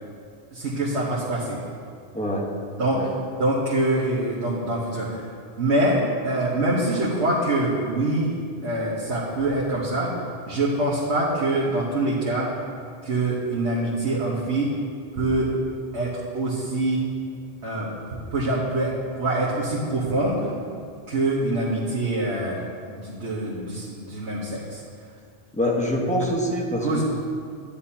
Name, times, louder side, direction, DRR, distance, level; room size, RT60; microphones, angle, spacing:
voice 1, 0.5-1.6 2.8-3.0 3.4-5.2 5.6-8.4 8.6-10.1 10.5-12.5 13.0-14.7 15.2-15.5 15.9-17.0 17.6-20.5 21.1-24.8 26.8-27.0, right 2 dB, 90° right, -6 dB, 1.5 m, -25 dB
voice 2, 2.1-2.5 2.9-3.1 25.5-27.0, equal, 5° left, -2 dB, 1.1 m, -25 dB
11.5 x 10.0 x 2.9 m, 2.2 s
omnidirectional pair, 1.1 m